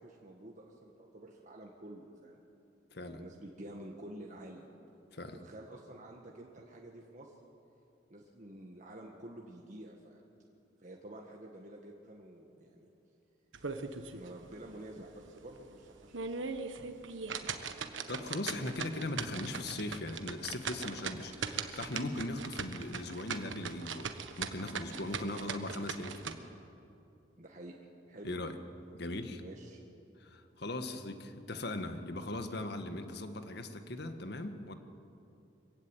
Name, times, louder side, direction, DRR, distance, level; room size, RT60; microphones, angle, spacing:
voice 1, 0.0-2.4 3.0-4.7 5.3-7.4 8.1-10.2 10.8-12.9 14.1-16.5 27.4-27.7 28.1-28.3 29.4-29.8, right 1 dB, 40° right, -1 dB, 1.7 m, -49 dB
voice 2, 2.9-3.2 5.1-5.4 18.1-26.4 28.2-28.6 28.9-29.4 30.2-34.7, left 2 dB, 60° left, 7 dB, 1.7 m, -39 dB
sound 1, 13.5-14.3 14.7-14.8 15.3-15.4 15.9-26.3, right 5 dB, 85° right, 1.3 m, -39 dB
24.5 x 15.5 x 9.1 m, 2.8 s
head